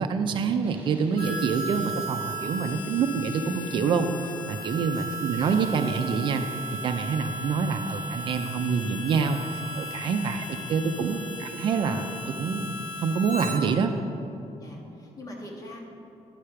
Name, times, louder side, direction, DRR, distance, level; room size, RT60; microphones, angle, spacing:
voice 1, 0.0-6.5 6.8-12.7 13.0-13.9, right 5 dB, 50° right, 7 dB, 0.4 m, -26 dB
sound 1, 0.6-10.6, right 2 dB, 15° right, 1.7 m, -51 dB
Harmonica, 1.2-13.6, equal, 70° left, 1.5 m, -36 dB
voice 2, 4.8-5.1 10.0-10.4 11.0-11.3 13.5-14.0 14.6-15.8, left 1 dB, 35° left, -1 dB, 1.4 m, -45 dB
10.5 x 5.0 x 5.7 m, 2.8 s
cardioid pair, 175°, 11 cm